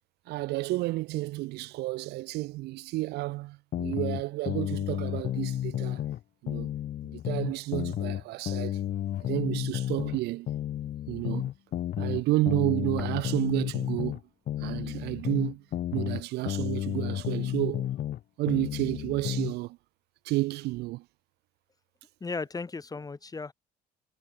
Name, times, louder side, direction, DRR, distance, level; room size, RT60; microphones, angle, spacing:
voice 1, 0.3-6.0 6.4-6.7 7.0-8.8 9.2-10.5 11.1-11.5 12.0-14.2 14.6-15.6 15.9-17.9 18.4-19.8 20.2-21.0, right 19 dB, 80° right, 0.5 m, -31 dB
sound 1, 3.7-6.2 6.5-10.2 10.5-14.2 14.5-18.2 18.5-19.5, left 12 dB, 55° left, 1.2 m, -32 dB
sound 2, 13.0-14.9 15.2-15.3 16.0-17.0, equal, ahead, 6.9 m, -53 dB
voice 2, 22.2-23.5, left 4 dB, 20° left, 2.7 m, -35 dB
cardioid pair, 110°, 17 cm